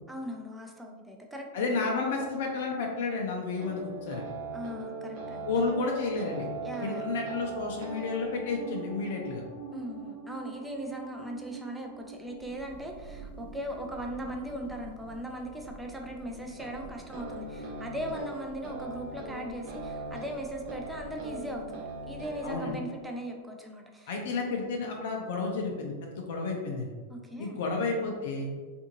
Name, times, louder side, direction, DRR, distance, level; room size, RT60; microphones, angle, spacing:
voice 1, 0.1-1.7 4.5-5.5 6.6-7.0 9.7-24.1 27.1-27.6, equal, 5° right, 1 dB, 0.5 m, -39 dB
voice 2, 1.5-4.2 5.4-6.5 6.8-9.4 22.4-22.7 24.1-26.9 27.4-28.5, left 4 dB, 70° left, 1 dB, 0.5 m, -31 dB
sound 1, 3.6-15.5 16.6-22.7, right 3 dB, 55° right, 0.8 m, -41 dB
Thunder, 12.1-23.1, right 3 dB, 90° right, 0.4 m, -50 dB
2.6 x 2.5 x 2.8 m, 1.4 s
hypercardioid pair, 115°, 0 cm